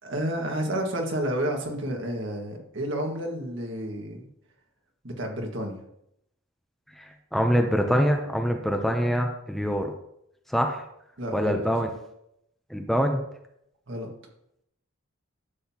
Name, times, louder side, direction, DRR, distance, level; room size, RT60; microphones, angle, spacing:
voice 1, 0.0-4.3 5.0-5.8 11.2-11.6 13.9-14.1, right 1 dB, 60° right, 1 dB, 1.8 m, -30 dB
voice 2, 6.9-9.9 10.5-10.8 11.3-11.9 12.7-13.2, equal, ahead, 3 dB, 0.6 m, -24 dB
11.5 x 7.7 x 2.9 m, 0.77 s
head